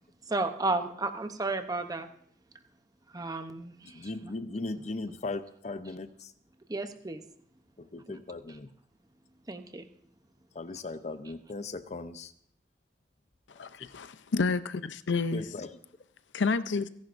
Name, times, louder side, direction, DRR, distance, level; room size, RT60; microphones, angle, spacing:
voice 1, 0.3-2.1 3.1-4.1 6.7-7.2 8.1-8.2 9.5-9.9, right 3 dB, 20° right, 8 dB, 0.7 m, -33 dB
voice 2, 3.8-6.3 7.8-8.7 10.5-12.3 13.8-13.9 15.3-15.8, left 2 dB, 40° left, 11 dB, 0.7 m, -38 dB
voice 3, 13.6-15.4 16.3-16.9, left 4 dB, 80° left, 13 dB, 0.6 m, -29 dB
29.0 x 10.5 x 2.6 m, 0.66 s
head